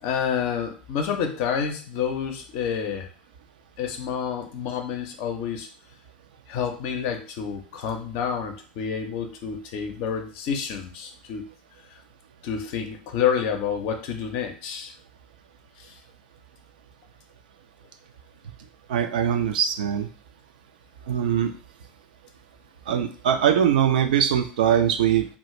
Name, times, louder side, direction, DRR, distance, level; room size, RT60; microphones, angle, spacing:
voice 1, 0.0-3.1 3.8-5.7 6.5-11.4 12.4-14.9 15.8-15.9, left 7 dB, 55° left, 5 dB, 0.5 m, -28 dB
voice 2, 18.9-20.1 21.1-21.5 22.9-25.3, right 9 dB, 65° right, 7 dB, 0.3 m, -22 dB
2.3 x 2.0 x 3.0 m, 0.39 s
figure-of-eight pair, 75°, 5 cm